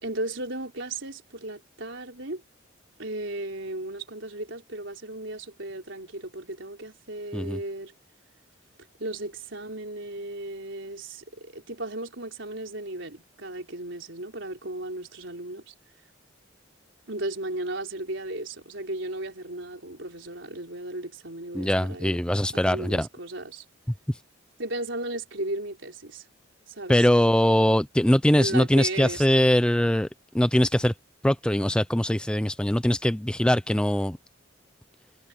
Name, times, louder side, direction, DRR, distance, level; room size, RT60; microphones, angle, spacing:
voice 1, 0.0-2.4 3.0-7.9 9.0-15.7 17.1-22.2 22.5-23.6 24.6-26.3 26.7-27.1 28.3-29.5, right 2 dB, 70° right, 4.1 m, -35 dB
voice 2, 21.5-23.1 26.9-30.1 30.3-30.9 31.2-34.2, equal, 5° left, 0.5 m, -22 dB
head